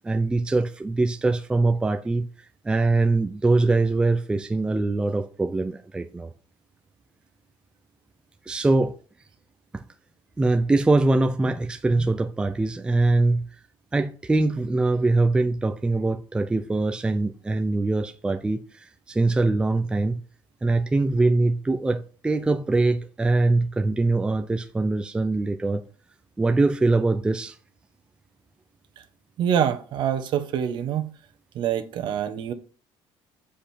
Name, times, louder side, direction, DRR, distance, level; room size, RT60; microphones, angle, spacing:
voice 1, 0.0-2.3 2.6-6.3 8.5-8.9 9.7-9.8 10.4-13.4 13.9-20.2 20.6-25.8 26.4-27.6, right 2 dB, 10° right, 0.5 m, -23 dB
voice 2, 29.4-31.1 31.5-32.5, right 9 dB, 55° right, 1.1 m, -25 dB
7.6 x 5.0 x 4.4 m
cardioid pair, 145°, 10 cm